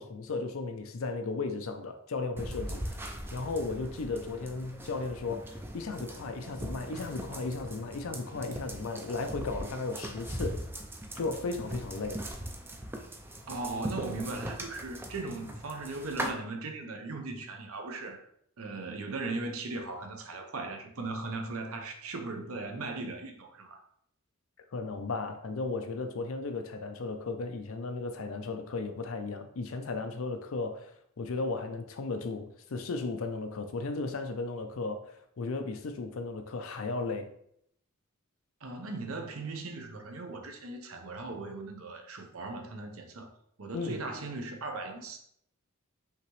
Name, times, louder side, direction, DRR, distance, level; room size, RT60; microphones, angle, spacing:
voice 1, 0.0-10.6 11.1-12.2 24.7-37.3 43.7-44.0, left 3 dB, 65° left, 0.5 m, -35 dB
sound 1, 2.4-16.3, right 1 dB, 10° right, 0.4 m, -40 dB
voice 2, 13.5-18.3 18.6-23.8 38.6-43.3 43.6-45.2, right 3 dB, 75° right, 0.8 m, -38 dB
5.7 x 2.9 x 3.1 m
head